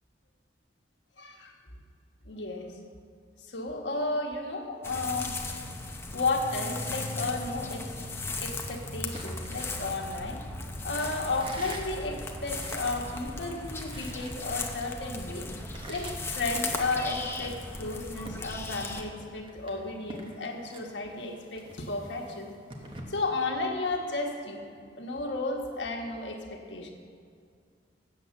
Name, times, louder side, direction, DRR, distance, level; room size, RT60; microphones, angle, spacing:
voice 1, 1.2-1.6 2.2-2.8 3.4-5.4 6.1-7.9 8.4-10.4 10.8-22.5 23.1-24.7 25.0-26.9, left 3 dB, 80° left, 1 dB, 1.2 m, -33 dB
sound 1, 4.8-19.0, left 2 dB, 15° left, 0.7 m, -37 dB
sound 2, 8.6-10.4 10.9-13.0 13.4-13.5 13.6-14.9 15.2-17.1 17.4-18.9 19.2-23.0, right 1 dB, 30° right, 1.1 m, -47 dB
7.9 x 7.6 x 7.0 m, 2.2 s
head